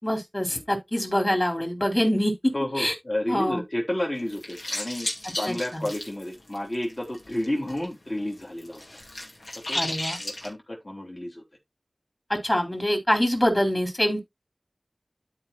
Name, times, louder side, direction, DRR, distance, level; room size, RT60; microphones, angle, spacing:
voice 1, 0.0-2.9 3.3-3.6 5.5-5.9 9.7-10.2 12.3-14.2, equal, 25° left, 3.9 m, -25 dB
voice 2, 2.5-5.1 5.4-8.8 9.7-9.8 10.2-11.4, left 1 dB, 45° left, 3.5 m, -31 dB
sound 1, 4.2-7.9 8.1-10.5, left 1 dB, 80° left, 2.7 m, -34 dB
12.5 x 5.1 x 2.7 m
wide cardioid pair, 50°, 0 cm